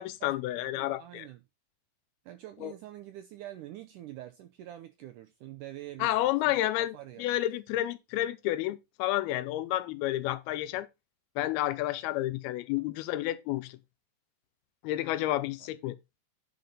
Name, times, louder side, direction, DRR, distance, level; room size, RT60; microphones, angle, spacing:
voice 1, 0.0-1.3 2.6-2.7 6.0-10.9 11.4-13.8 14.8-16.0, left 14 dB, 85° left, 2.6 m, -30 dB
voice 2, 0.8-1.4 2.3-6.5 6.9-7.2, right 14 dB, 85° right, 1.8 m, -45 dB
9.6 x 4.2 x 5.3 m
omnidirectional pair, 4.4 m